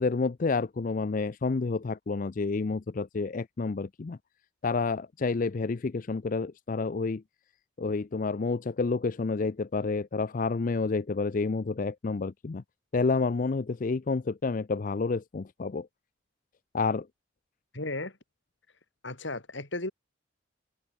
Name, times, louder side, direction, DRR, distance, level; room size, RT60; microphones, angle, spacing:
voice 1, 0.0-4.2 4.6-7.2 7.8-12.6 12.9-15.9 16.7-17.1, left 4 dB, 40° left, 0.4 m, -29 dB
voice 2, 17.7-18.2 19.0-19.9, left 2 dB, 65° left, 3.6 m, -34 dB
head